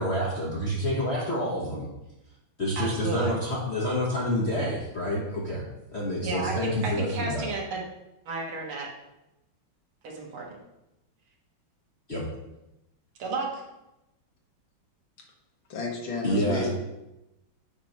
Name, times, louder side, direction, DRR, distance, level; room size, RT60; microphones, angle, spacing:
voice 1, 0.0-1.9 2.6-5.6 5.9-7.5 12.1-12.2 16.2-16.8, equal, 40° left, -5 dB, 1.0 m, -28 dB
voice 2, 2.8-3.4 6.2-7.8 8.3-8.9 10.0-10.6 13.2-13.6, right 3 dB, 90° right, -1 dB, 2.2 m, -33 dB
voice 3, 15.7-16.8, left 3 dB, 70° left, 1 dB, 1.9 m, -31 dB
8.7 x 3.1 x 5.3 m, 0.93 s
omnidirectional pair, 2.2 m